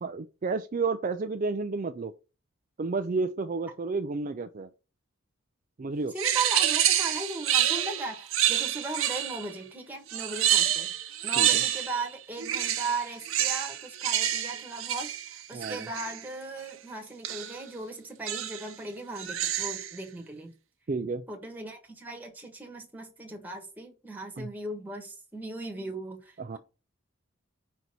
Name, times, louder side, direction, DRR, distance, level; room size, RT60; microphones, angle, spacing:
voice 1, 0.0-2.1 2.8-4.7 5.8-6.1 11.4-11.6 15.5-15.9 20.9-21.2 24.4-24.5 26.4-26.6, right 4 dB, 40° right, 0.4 m, -31 dB
voice 2, 6.1-10.9 11.2-20.5 21.3-26.6, right 3 dB, 10° right, 1.5 m, -37 dB
sound 1, 6.2-9.5 10.1-12.1 12.4-16.2 17.2-17.6 18.3-18.7 19.2-20.0, right 11 dB, 85° right, 1.0 m, -28 dB
5.5 x 4.0 x 6.1 m
head